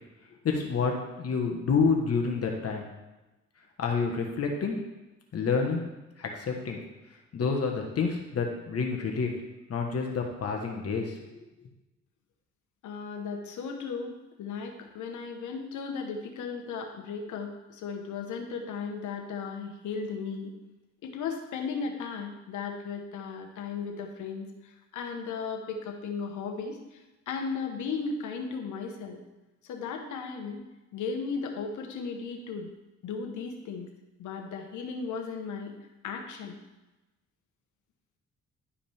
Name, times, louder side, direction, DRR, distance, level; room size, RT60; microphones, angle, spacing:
voice 1, 0.4-2.9 3.8-4.8 5.3-5.8 6.2-6.8 7.3-9.3 9.7-11.4, left 5 dB, 55° left, 2 dB, 1.3 m, -28 dB
voice 2, 12.8-20.5 21.0-29.2 29.6-32.7 33.0-33.9 34.2-35.7 36.0-36.6, left 5 dB, 75° left, 3 dB, 1.3 m, -36 dB
11.5 x 5.0 x 3.5 m, 1.1 s
cardioid pair, 90°, 30 cm